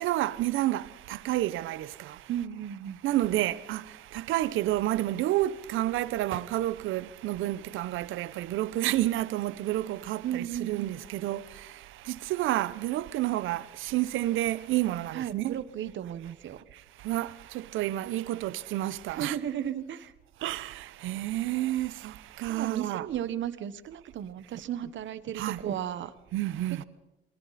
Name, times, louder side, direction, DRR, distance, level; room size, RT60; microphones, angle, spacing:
voice 1, 0.0-2.3 3.0-15.6 16.7-19.4 20.4-23.1 25.3-25.6 26.3-26.8, right 15 dB, 90° right, 0.8 m, -30 dB
voice 2, 2.3-3.0 10.2-11.0 15.1-16.6 19.1-20.1 22.5-26.1, right 10 dB, 70° right, 1.4 m, -34 dB
28.0 x 23.0 x 4.2 m
cardioid pair, 90°, 20 cm